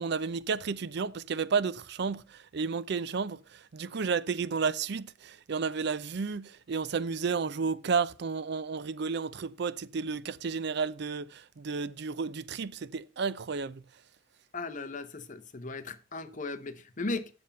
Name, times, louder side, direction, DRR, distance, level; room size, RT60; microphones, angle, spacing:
voice 1, 0.0-13.8, right 5 dB, 60° right, 0.5 m, -32 dB
voice 2, 14.5-17.3, left 3 dB, 40° left, 0.9 m, -37 dB
9.4 x 7.1 x 5.3 m
head